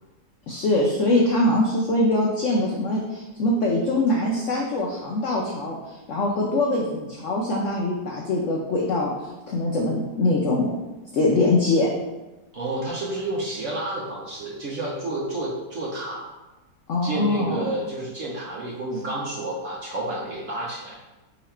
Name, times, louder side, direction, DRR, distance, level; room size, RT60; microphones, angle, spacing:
voice 1, 0.5-10.7 11.1-11.9 16.9-17.7, left 2 dB, 80° left, -1 dB, 0.6 m, -23 dB
voice 2, 12.5-16.3 17.0-21.0, right 2 dB, 60° right, -4 dB, 0.8 m, -30 dB
4.0 x 2.8 x 4.3 m, 1.1 s
omnidirectional pair, 2.0 m